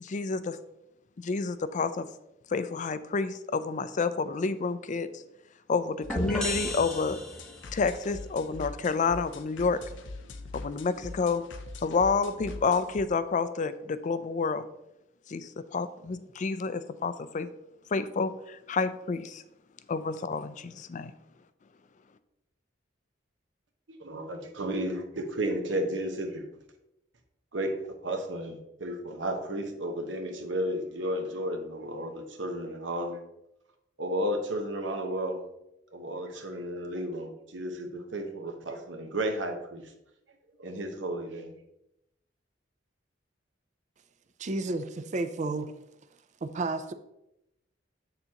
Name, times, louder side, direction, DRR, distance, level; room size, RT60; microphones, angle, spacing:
voice 1, 0.0-0.6 1.2-2.1 2.5-5.1 5.7-7.2 7.7-9.8 10.5-11.4 11.8-14.6 15.3-17.5 17.9-19.4 19.9-21.1, left 4 dB, 40° left, 13 dB, 0.4 m, -29 dB
sound 1, 6.0-13.0, left 3 dB, 80° left, 0.7 m, -44 dB
sound 2, 6.1-7.8, left 1 dB, 5° left, 0.7 m, -33 dB
voice 2, 24.0-26.5 27.5-33.2 34.0-35.4 35.9-39.9 40.6-41.5, right 1 dB, 75° right, 5 dB, 1.1 m, -33 dB
voice 3, 44.4-45.8 46.4-46.9, right 2 dB, 40° right, 10 dB, 0.4 m, -32 dB
7.8 x 6.8 x 2.9 m, 0.85 s
head